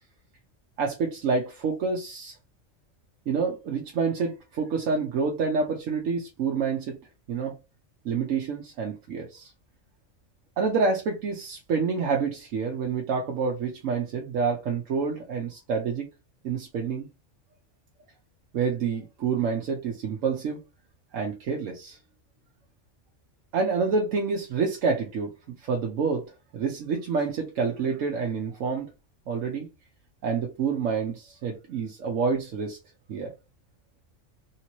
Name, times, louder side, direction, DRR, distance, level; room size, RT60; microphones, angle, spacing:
voice 1, 0.8-2.4 3.3-7.0 7.3-7.5 8.0-9.5 10.6-16.1 16.4-17.1 18.5-20.6 21.1-22.0 23.5-26.3 26.5-28.9 29.3-29.7 30.2-32.8 33.1-33.3, right 5 dB, 90° right, 1.1 m, -28 dB
3.3 x 2.8 x 3.0 m
omnidirectional pair, 1.3 m